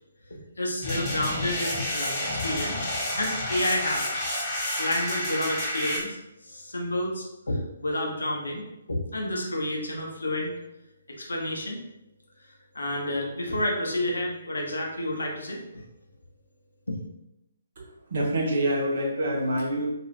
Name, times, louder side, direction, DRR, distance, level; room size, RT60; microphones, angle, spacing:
voice 1, 0.3-4.2 4.8-6.2 6.4-10.5 11.2-11.8 12.7-15.8 16.9-17.0, left 1 dB, 70° left, 0 dB, 0.7 m, -30 dB
sound 1, 0.8-6.0, left 1 dB, 20° left, 0.8 m, -30 dB
voice 2, 17.8-19.9, right 1 dB, 50° right, -3 dB, 0.9 m, -26 dB
2.5 x 2.3 x 3.2 m, 0.86 s
figure-of-eight pair, 135°, 0 cm